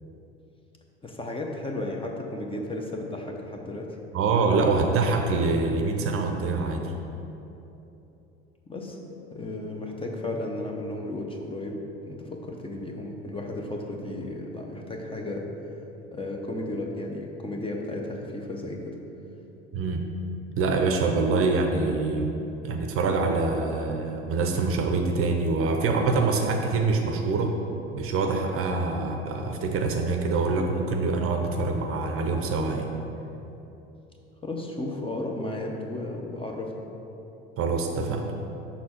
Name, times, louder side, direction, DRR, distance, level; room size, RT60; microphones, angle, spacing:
voice 1, 1.0-4.0 8.7-9.0 9.3-15.5 16.1-19.0 34.4-36.7, left 2 dB, 15° left, 1 dB, 0.8 m, -34 dB
voice 2, 4.1-6.9 19.7-20.1 20.6-27.6 27.9-32.9 37.6-38.3, right 3 dB, 45° right, 3 dB, 0.6 m, -25 dB
5.7 x 4.2 x 4.3 m, 2.9 s
hypercardioid pair, 65°, 31 cm